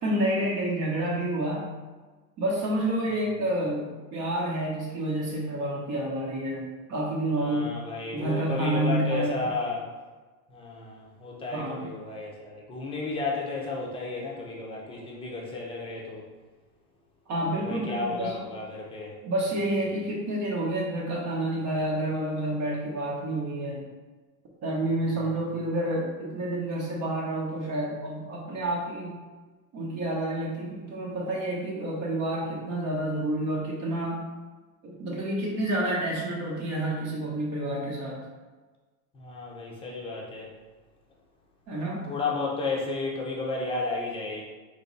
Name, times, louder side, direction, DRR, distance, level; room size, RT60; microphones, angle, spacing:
voice 1, 0.0-1.7 2.4-7.7 8.1-9.5 11.5-11.9 17.3-18.4 19.2-23.8 24.6-29.1 29.7-34.2 34.8-38.2 41.7-42.0, right 1 dB, 35° right, -3 dB, 1.0 m, -29 dB
voice 2, 7.4-9.8 10.5-16.2 17.6-19.2 39.1-40.5 42.0-44.4, left 3 dB, 10° left, -3 dB, 0.8 m, -33 dB
4.3 x 3.2 x 3.9 m, 1.3 s
supercardioid pair, 145°, 47 cm